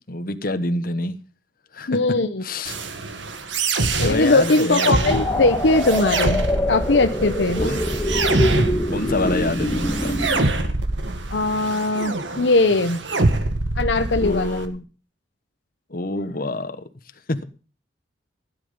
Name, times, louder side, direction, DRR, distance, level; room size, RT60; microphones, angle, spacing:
voice 1, 0.1-1.2 1.7-2.0 2.4-2.8 3.7-5.3 7.6-7.8 8.9-10.2 14.2-14.8 15.9-16.8 17.3-17.4, left 2 dB, 50° left, 1.3 m, -26 dB
voice 2, 1.9-2.4 4.0-7.6 11.3-13.0 13.8-14.6, left 2 dB, 70° left, 0.9 m, -20 dB
sound 1, 2.7-14.7, right 2 dB, 90° right, 1.9 m, -25 dB
sound 2, 5.1-10.4, left 1 dB, 15° left, 1.7 m, -24 dB
16.0 x 10.0 x 5.4 m
head